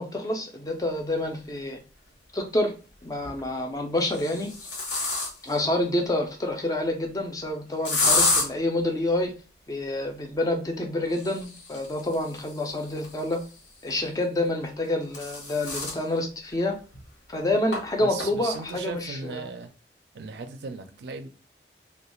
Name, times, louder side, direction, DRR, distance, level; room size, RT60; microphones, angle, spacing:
voice 1, 0.0-1.8 2.3-2.8 3.0-4.7 5.4-9.3 9.7-13.4 13.8-16.8 17.3-19.4, left 1 dB, 20° left, 0.4 m, -28 dB
sound 1, 1.5-1.6 3.0-3.4 4.0-5.6 7.8-8.5 11.0-13.7 14.7-16.0 16.5-16.6 16.9-17.0 17.7-17.8 18.2-18.6, left 3 dB, 85° left, 0.9 m, -29 dB
voice 2, 18.0-19.7 20.1-21.3, right 4 dB, 70° right, 0.4 m, -37 dB
2.4 x 2.2 x 3.0 m
head